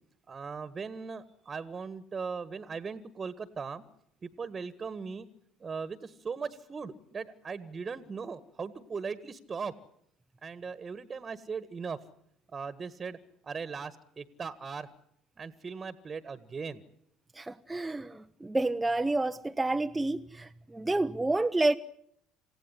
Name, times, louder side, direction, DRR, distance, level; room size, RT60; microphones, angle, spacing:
voice 1, 0.3-3.8 4.2-5.3 5.6-9.7 10.4-12.0 12.5-13.2 13.4-14.9 15.4-16.8, right 5 dB, 30° right, 1.6 m, -39 dB
voice 2, 17.3-21.8, right 2 dB, 15° right, 0.9 m, -29 dB
28.0 x 16.5 x 9.8 m
hypercardioid pair, 60°, 0 cm